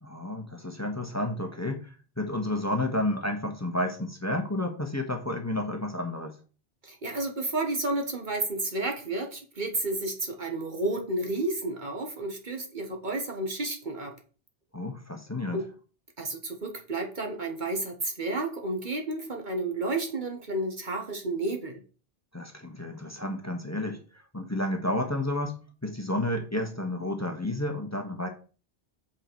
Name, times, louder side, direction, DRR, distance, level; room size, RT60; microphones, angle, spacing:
voice 1, 0.0-6.3 14.7-15.6 22.3-25.6 25.8-28.3, left 1 dB, 15° left, 4 dB, 1.3 m, -31 dB
voice 2, 6.8-14.1 15.5-15.7 16.2-21.8, right 2 dB, 50° right, 3 dB, 1.4 m, -31 dB
7.9 x 5.8 x 4.6 m, 0.37 s
omnidirectional pair, 1.0 m